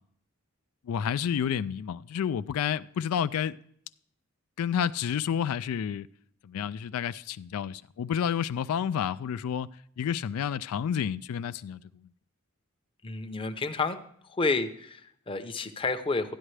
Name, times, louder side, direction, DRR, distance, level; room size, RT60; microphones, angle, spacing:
voice 1, 0.9-3.6 4.6-6.1 6.4-9.7 10.0-11.8, left 8 dB, 85° left, 0.3 m, -30 dB
voice 2, 13.0-14.0 14.2-16.3, left 3 dB, 25° left, 0.7 m, -30 dB
12.5 x 9.8 x 3.2 m
head